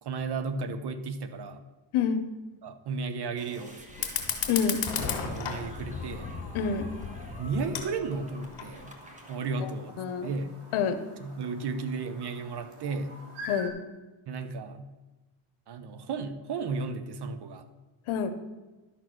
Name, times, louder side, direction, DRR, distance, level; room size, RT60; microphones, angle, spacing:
voice 1, 0.0-1.6 2.6-4.2 5.2-6.3 7.3-8.9 9.3-10.0 10.2-10.5 11.2-13.1 14.3-14.9 15.7-17.7, right 4 dB, 50° right, 10 dB, 1.0 m, -34 dB
sound 1, 3.4-9.4, equal, 15° right, 1.4 m, -49 dB
Fire, 3.9-8.9, left 7 dB, 60° left, 2.0 m, -35 dB
voice 2, 4.5-4.8 6.5-6.9 9.6-9.7 10.0-10.3 10.7-11.0 13.5-13.7 18.1-18.3, left 7 dB, 75° left, 9 dB, 1.0 m, -27 dB
Chirp tweet, 8.1-13.7, right 1 dB, 85° right, 2.2 m, -47 dB
11.5 x 4.3 x 6.1 m, 1.2 s
cardioid pair, 95°, 50 cm